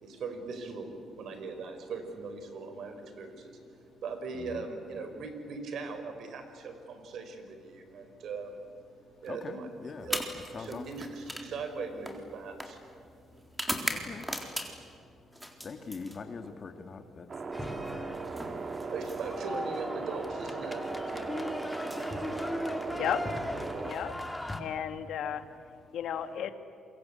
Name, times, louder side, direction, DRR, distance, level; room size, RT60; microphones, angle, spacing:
voice 1, 0.0-3.6 4.0-8.6 9.2-12.8 18.9-21.3, right 4 dB, 70° right, 7 dB, 4.7 m, -40 dB
voice 2, 9.3-9.6 9.8-10.1 10.5-10.8 13.9-14.3 15.6-17.3 17.6-18.5, left 5 dB, 45° left, 7 dB, 2.0 m, -43 dB
sound 1, 10.0-15.0 15.3-16.6 17.8-19.6 20.7-20.9 21.7-22.9, equal, 5° right, 3.8 m, -39 dB
sound 2, 17.3-23.9, right 4 dB, 40° right, 2.6 m, -38 dB
sound 3, 17.5-24.6, left 1 dB, 10° left, 2.6 m, -38 dB
voice 3, 22.9-23.2 23.8-24.1 24.6-25.4 25.9-26.5, left 9 dB, 75° left, 9 dB, 1.8 m, -33 dB
28.0 x 23.5 x 8.7 m, 2.4 s
cardioid pair, 90°, 0 cm